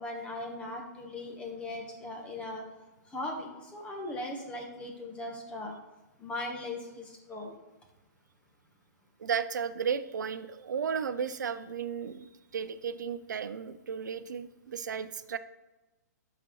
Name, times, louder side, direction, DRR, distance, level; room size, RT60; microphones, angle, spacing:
voice 1, 0.0-2.6 3.1-5.7 6.2-7.6, left 2 dB, 10° left, 1 dB, 1.2 m, -39 dB
voice 2, 9.2-15.4, right 7 dB, 85° right, 13 dB, 0.5 m, -34 dB
11.5 x 4.0 x 3.1 m, 1.1 s
hypercardioid pair, 145°, 9 cm